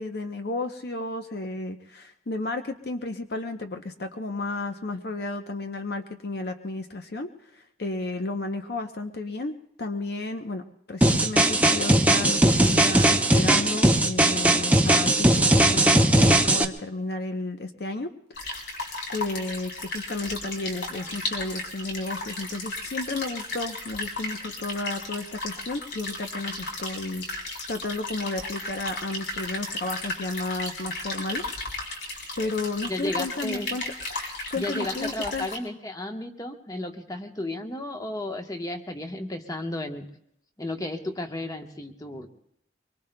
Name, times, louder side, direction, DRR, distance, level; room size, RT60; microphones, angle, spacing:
voice 1, 0.0-10.6 10.9-18.6 19.1-31.6 32.4-33.8 34.2-35.5, left 2 dB, 55° left, 6 dB, 0.7 m, -33 dB
sound 1, 11.0-16.6, right 1 dB, 10° right, 0.6 m, -19 dB
sound 2, 18.4-35.6, left 2 dB, 70° left, 3.5 m, -35 dB
voice 2, 32.9-33.7 34.5-40.1 40.6-42.3, left 1 dB, 20° left, 4 dB, 1.0 m, -33 dB
24.5 x 23.0 x 2.2 m, 0.72 s
head